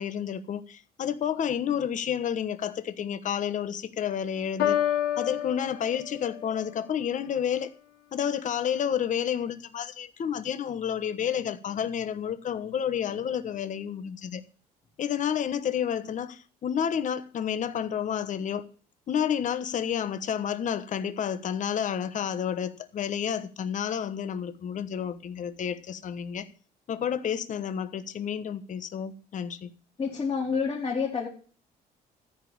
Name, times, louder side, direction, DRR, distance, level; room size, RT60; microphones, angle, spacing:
voice 1, 0.0-4.8 5.2-7.7 8.1-14.4 15.0-18.7 19.1-26.5 26.9-29.7, left 8 dB, 50° left, 1.2 m, -30 dB
Piano, 4.6-6.6, left 10 dB, 80° left, 3.1 m, -28 dB
voice 2, 30.0-31.3, left 5 dB, 30° left, 3.2 m, -28 dB
14.0 x 5.1 x 8.7 m
cardioid pair, 110°, 17 cm